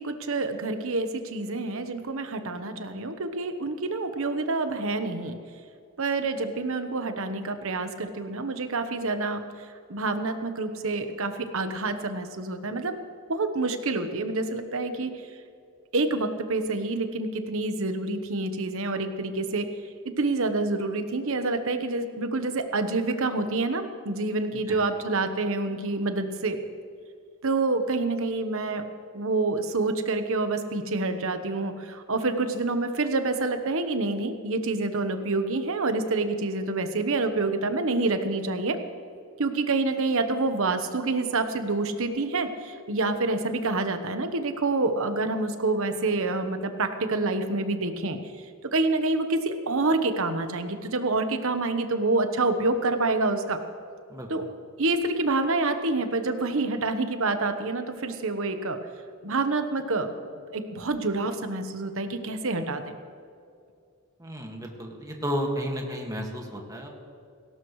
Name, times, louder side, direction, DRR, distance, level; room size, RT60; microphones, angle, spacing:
voice 1, 0.0-5.4 6.0-13.0 13.3-15.1 15.9-19.7 20.2-26.6 27.4-28.8 29.1-38.8 39.4-48.2 48.7-53.6 54.3-54.5 54.8-58.8 59.2-60.1 60.5-62.9, right 3 dB, 65° right, 8 dB, 1.1 m, -27 dB
voice 2, 64.2-66.9, equal, 15° right, 1 dB, 1.9 m, -32 dB
18.0 x 17.5 x 3.2 m, 2.4 s
head